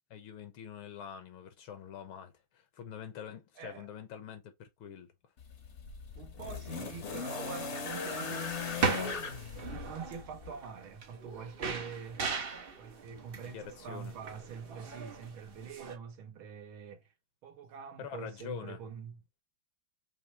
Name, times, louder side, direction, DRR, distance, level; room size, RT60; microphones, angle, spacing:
voice 1, 0.1-5.1 13.4-14.1 18.0-18.8, left 8 dB, 80° left, 1.9 m, -45 dB
voice 2, 3.6-3.9 6.2-9.2 9.6-12.3 12.8-17.1 17.4-19.2, right 6 dB, 80° right, 1.8 m, -45 dB
sound 1, 5.4-10.6 11.7-11.8, left 5 dB, 50° left, 0.9 m, -39 dB
sound 2, 8.5-16.0, right 5 dB, 60° right, 0.5 m, -38 dB
5.4 x 3.1 x 3.0 m
omnidirectional pair, 2.3 m